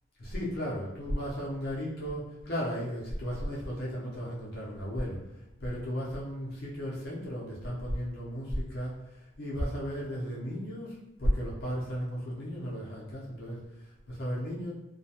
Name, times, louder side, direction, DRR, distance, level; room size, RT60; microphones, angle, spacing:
voice 1, 0.2-5.2 5.6-14.7, equal, 50° left, -5 dB, 0.6 m, -34 dB
2.3 x 2.1 x 2.7 m, 0.92 s
head